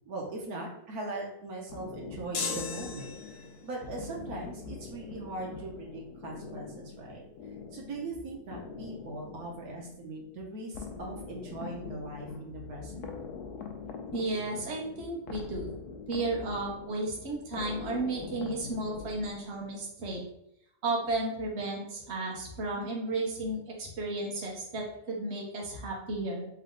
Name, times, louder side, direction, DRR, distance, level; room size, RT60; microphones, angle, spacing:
voice 1, 0.1-3.1 3.6-7.2 7.7-13.1, right 2 dB, 75° right, -1 dB, 1.3 m, -40 dB
sound 1, 1.7-19.8, left 5 dB, 90° left, 1.2 m, -44 dB
sound 2, 2.3-3.7, left 4 dB, 60° left, 1.1 m, -35 dB
voice 2, 14.1-15.8 16.1-20.2 20.8-26.5, right 2 dB, 50° right, -2 dB, 1.2 m, -33 dB
3.4 x 3.3 x 3.8 m, 0.75 s
omnidirectional pair, 1.6 m